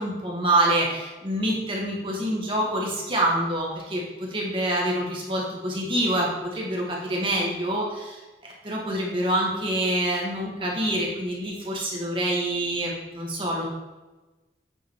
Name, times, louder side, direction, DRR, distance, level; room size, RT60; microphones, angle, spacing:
voice 1, 0.0-13.6, right 1 dB, 30° right, -2 dB, 1.5 m, -26 dB
8.2 x 3.9 x 4.6 m, 1.2 s
head